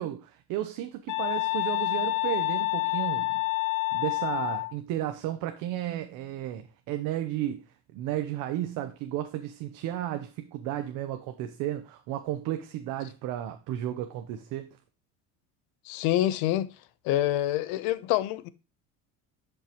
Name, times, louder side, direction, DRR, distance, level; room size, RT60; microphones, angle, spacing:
voice 1, 0.0-3.4 3.9-7.6 7.9-14.8, right 12 dB, 65° right, 0.9 m, -33 dB
sound 1, 1.1-4.7, left 20 dB, 60° left, 0.8 m, -28 dB
voice 2, 15.9-16.7 17.0-18.5, left 14 dB, 85° left, 0.9 m, -26 dB
10.0 x 5.5 x 3.0 m
cardioid pair, 160°, 34 cm